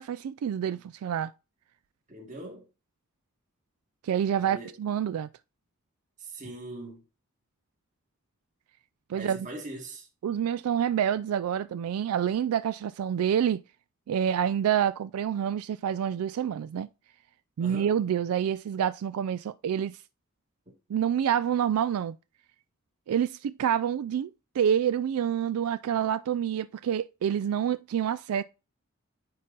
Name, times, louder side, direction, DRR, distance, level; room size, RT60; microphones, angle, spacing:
voice 1, 0.0-1.3 4.0-5.3 9.1-9.5 10.2-13.6 14.1-16.9 17.6-20.0 20.9-22.2 23.1-24.3 24.6-28.4, right 9 dB, 90° right, 0.3 m, -27 dB
voice 2, 2.1-2.7 4.4-4.8 6.2-7.0 9.1-10.1 17.6-17.9, right 2 dB, 35° right, 1.9 m, -41 dB
9.7 x 3.8 x 3.9 m
head